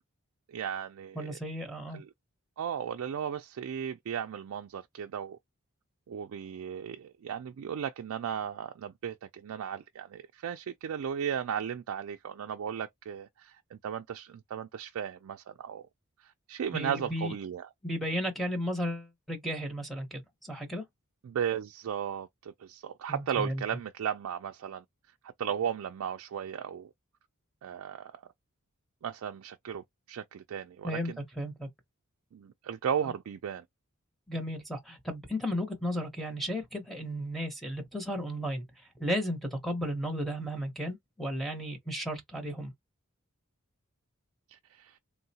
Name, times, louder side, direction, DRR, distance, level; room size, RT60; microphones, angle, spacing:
voice 1, 0.5-1.4 1.9-2.1 2.6-5.4 6.1-15.9 16.2-17.7 21.2-24.8 25.4-26.9 27.6-28.2 29.0-31.2 32.3-33.6 44.5-45.0, right 8 dB, 70° right, 0.3 m, -36 dB
voice 2, 1.1-2.0 16.7-17.3 17.8-20.8 23.1-23.6 30.8-31.7 34.3-42.7, equal, ahead, 0.8 m, -34 dB
3.7 x 2.0 x 2.7 m
head